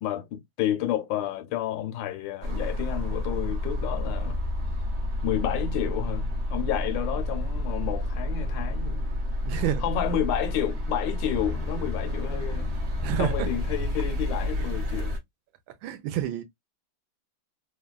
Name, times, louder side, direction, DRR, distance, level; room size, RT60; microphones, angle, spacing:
voice 1, 0.0-4.4 5.2-9.1 9.8-12.7 13.2-15.2, left 11 dB, 75° left, 1.3 m, -30 dB
sound 1, 2.4-15.2, left 1 dB, 55° right, 0.7 m, -30 dB
voice 2, 9.4-9.8 13.0-13.5 15.8-16.4, right 11 dB, 80° right, 1.3 m, -29 dB
3.3 x 2.2 x 2.2 m
omnidirectional pair, 2.1 m